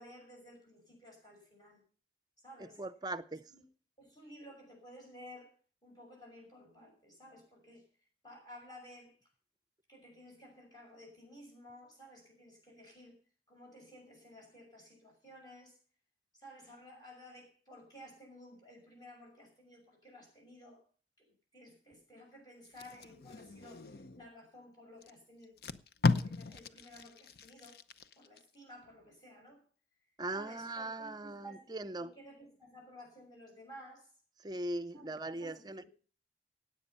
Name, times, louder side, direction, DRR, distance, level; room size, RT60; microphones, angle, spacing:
voice 1, 0.0-1.8 2.4-2.8 3.5-3.6 4.0-5.5 5.8-7.8 8.2-9.2 9.9-13.2 13.5-15.8 16.3-20.8 21.5-25.5 26.0-27.8 28.2-29.6 30.3-31.6 32.0-34.1 34.9-35.9, equal, 25° left, 5.9 m, -54 dB
voice 2, 2.8-3.4 30.2-32.1 34.4-35.8, right 2 dB, 25° right, 0.7 m, -40 dB
Packing tape duct tape, 22.6-24.3 25.0-25.1 25.4-28.4 28.8-29.1, left 3 dB, 55° left, 0.7 m, -36 dB
17.5 x 8.8 x 5.6 m
head